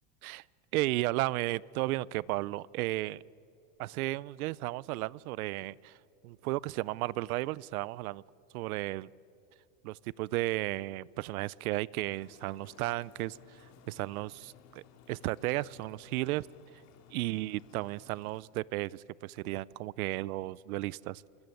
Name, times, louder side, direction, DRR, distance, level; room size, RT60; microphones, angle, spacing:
voice 1, 0.7-3.2 3.8-6.0 6.2-8.2 8.5-9.1 9.8-13.4 13.9-16.5 17.1-21.2, right 18 dB, 80° right, 24 dB, 0.7 m, -34 dB
sound 1, 12.1-18.4, left 7 dB, 35° left, 2.6 m, -58 dB
28.0 x 24.0 x 7.9 m, 2.7 s
supercardioid pair, 160°, 42 cm